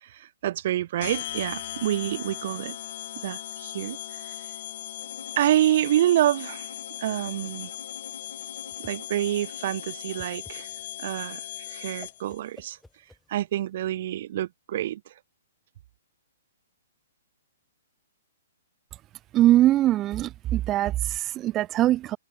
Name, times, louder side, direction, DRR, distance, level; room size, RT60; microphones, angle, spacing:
voice 1, 0.4-2.8 3.2-4.0 5.4-6.7 7.0-7.7 8.8-10.7 11.0-11.4 11.7-12.8 13.3-15.0, right 12 dB, 55° right, 0.4 m, -27 dB
sound 1, 1.0-12.4, left 13 dB, 50° left, 3.3 m, -38 dB
Bowed string instrument, 5.0-10.4, left 5 dB, 80° left, 3.6 m, -48 dB
Whoosh swoosh swish, 8.2-13.7, left 1 dB, 5° left, 6.4 m, -54 dB
voice 2, 19.3-22.2, right 14 dB, 25° right, 0.8 m, -22 dB
hypercardioid pair, 130°, 0 cm